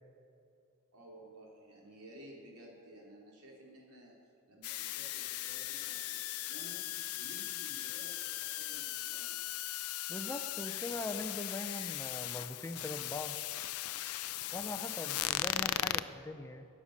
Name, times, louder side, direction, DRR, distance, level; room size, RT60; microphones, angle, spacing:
voice 1, 0.9-4.1 4.5-6.8 7.1-9.4 14.4-14.5, right 1 dB, 85° right, -2 dB, 3.5 m, -54 dB
sound 1, 4.6-16.0, left 14 dB, 80° left, 0.4 m, -38 dB
voice 2, 10.1-13.4 14.5-16.7, left 2 dB, 10° left, 8 dB, 0.5 m, -41 dB
13.0 x 9.8 x 6.6 m, 2.6 s
head